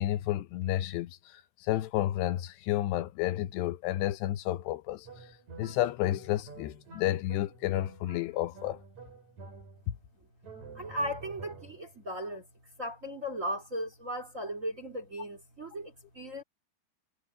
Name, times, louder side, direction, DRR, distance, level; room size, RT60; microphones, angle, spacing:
voice 1, 0.0-5.1 5.6-8.8 9.9-10.0, left 14 dB, 80° left, 2.9 m, -31 dB
sound 1, 5.0-10.0 10.4-12.0, right 4 dB, 40° right, 8.5 m, -49 dB
voice 2, 10.7-12.5 12.8-16.4, equal, 20° right, 2.6 m, -37 dB
omnidirectional pair, 5.0 m